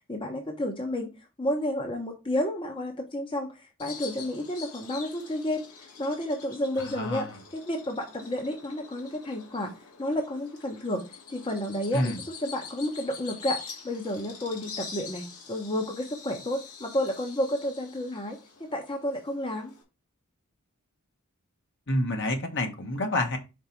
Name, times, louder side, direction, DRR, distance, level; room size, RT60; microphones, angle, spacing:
voice 1, 0.1-1.1 1.4-3.5 3.8-5.7 6.0-7.3 7.5-9.7 10.0-11.0 11.3-12.1 12.4-13.6 13.8-19.7, left 1 dB, 25° left, 2 dB, 1.0 m, -31 dB
Bird vocalization bird call bird song, 3.8-19.8, left 5 dB, 75° left, 2.1 m, -45 dB
voice 2, 6.8-7.4 11.9-12.2 21.9-23.4, left 1 dB, 55° left, 3 dB, 1.5 m, -28 dB
5.3 x 4.0 x 5.9 m, 0.28 s
head